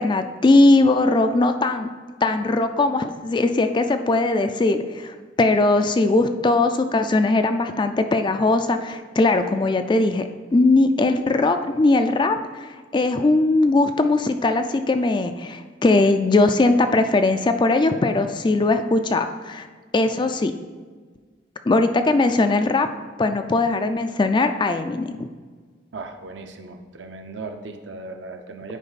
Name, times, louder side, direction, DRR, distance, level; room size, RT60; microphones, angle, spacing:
voice 1, 0.0-1.9 2.2-19.7 19.9-20.5 21.7-22.9 23.2-25.3, left 2 dB, 25° left, 8 dB, 0.3 m, -20 dB
voice 2, 25.9-28.8, right 3 dB, 65° right, 5 dB, 0.7 m, -37 dB
9.9 x 4.6 x 4.1 m, 1.5 s
head